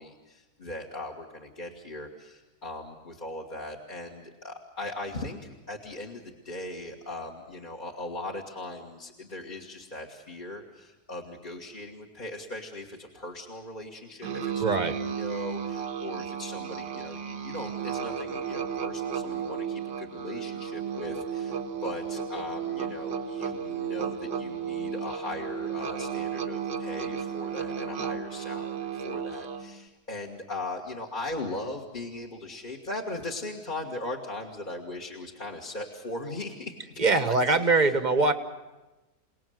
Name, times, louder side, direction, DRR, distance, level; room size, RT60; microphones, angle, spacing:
voice 1, 0.0-37.8, left 2 dB, 30° left, 2 dB, 1.8 m, -39 dB
Musical instrument, 14.2-29.8, right 7 dB, 90° right, 2.0 m, -34 dB
voice 2, 14.6-14.9 37.0-38.3, right 3 dB, 30° right, 9 dB, 1.2 m, -22 dB
28.5 x 18.5 x 7.8 m, 1.1 s
omnidirectional pair, 1.8 m